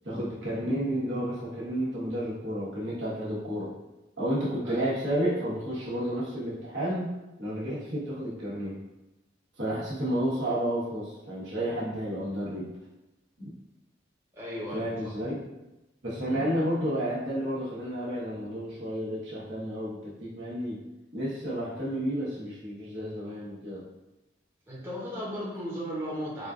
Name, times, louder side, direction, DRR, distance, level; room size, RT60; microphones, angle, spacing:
voice 1, 0.0-3.7 4.2-7.1 7.4-8.8 9.6-12.7 13.4-13.5 14.7-15.4 16.0-20.8 21.1-23.9, equal, 70° right, -7 dB, 1.2 m, -31 dB
voice 2, 14.3-15.1 16.3-16.4 24.7-26.5, equal, 15° right, -8 dB, 0.8 m, -36 dB
4.8 x 2.3 x 2.5 m, 0.99 s
head